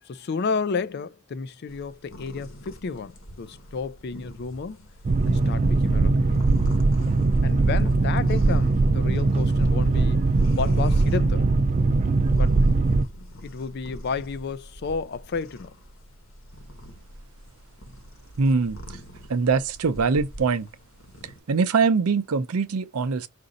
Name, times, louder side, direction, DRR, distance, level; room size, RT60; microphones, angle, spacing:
voice 1, 0.0-4.9 5.3-6.4 7.4-11.5 12.3-12.6 13.4-15.8, left 5 dB, 50° left, 0.4 m, -32 dB
sound 1, 1.7-21.4, equal, 70° left, 1.1 m, -45 dB
Boat Water vehicle, 5.0-13.0, right 3 dB, 30° right, 0.3 m, -21 dB
voice 2, 18.4-19.0 19.3-20.7 21.5-23.3, right 4 dB, 90° right, 0.5 m, -23 dB
5.1 x 2.6 x 3.9 m
head